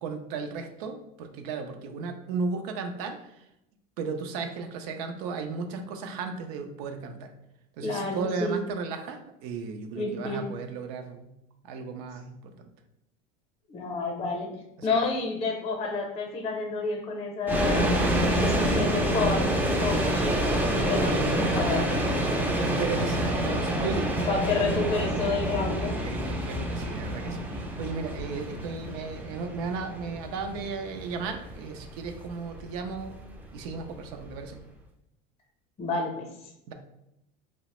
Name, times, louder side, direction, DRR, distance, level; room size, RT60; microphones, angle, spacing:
voice 1, 0.0-3.2 4.0-7.3 7.8-11.3 11.6-12.7 14.8-14.9 21.7-22.0 22.6-24.1 24.6-24.9 26.0-33.2 33.5-34.6 36.7-36.8, right 4 dB, 80° right, 6 dB, 0.4 m, -35 dB
voice 2, 7.8-8.6 9.9-10.5 13.7-14.5 14.8-21.9 24.3-26.0 35.8-36.2, left 3 dB, 30° left, 1 dB, 0.6 m, -30 dB
sound 1, 17.5-34.5, right 1 dB, 10° right, 0.4 m, -28 dB
2.8 x 2.0 x 2.9 m, 0.84 s
supercardioid pair, 120°, 20 cm